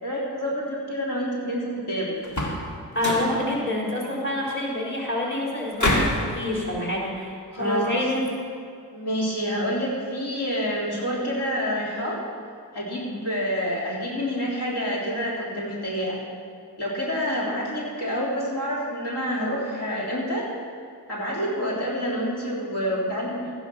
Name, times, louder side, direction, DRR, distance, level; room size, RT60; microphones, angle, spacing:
voice 1, 0.0-2.2 7.5-8.1 8.9-12.2 12.7-16.2 16.8-20.5 21.1-23.5, equal, 70° left, -6 dB, 3.7 m, -28 dB
sound 1, 2.2-2.7 3.0-3.4 5.8-6.2, left 1 dB, 45° left, 2.8 m, -24 dB
voice 2, 2.9-8.3 13.0-13.2, left 1 dB, 30° left, -4 dB, 4.1 m, -27 dB
13.5 x 10.5 x 6.0 m, 2.3 s
cardioid pair, 70°, 40 cm